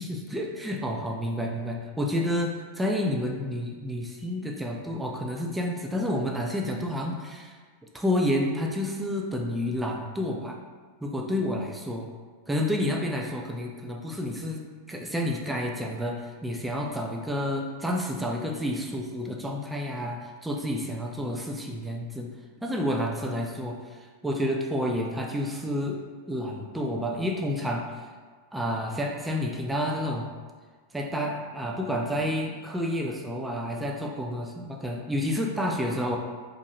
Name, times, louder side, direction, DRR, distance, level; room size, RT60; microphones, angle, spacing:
voice 1, 0.0-7.6 7.9-10.6 11.0-12.1 12.5-22.3 22.6-23.8 24.2-26.0 26.3-28.0 28.5-30.3 30.9-36.2, equal, 5° right, 0 dB, 0.3 m, -30 dB
2.7 x 2.5 x 2.9 m, 1.5 s
figure-of-eight pair, 90°, 0 cm